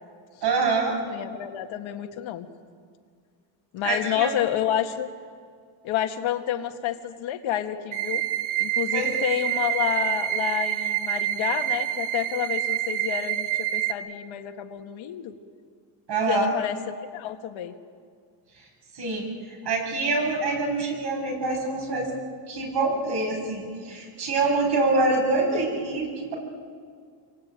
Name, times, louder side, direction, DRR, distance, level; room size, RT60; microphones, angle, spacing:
voice 1, 0.4-1.0 3.8-4.3 8.9-9.1 16.1-16.5 18.9-22.1 22.5-26.3, right 3 dB, 55° right, 1 dB, 7.4 m, -25 dB
voice 2, 1.0-2.5 3.7-5.1 5.8-8.2 8.6-15.4 16.3-17.7, left 11 dB, 75° left, 5 dB, 1.9 m, -29 dB
sound 1, 7.9-13.9, right 13 dB, 85° right, 2.1 m, -27 dB
27.0 x 24.0 x 9.0 m, 2.1 s
cardioid pair, 155°, 47 cm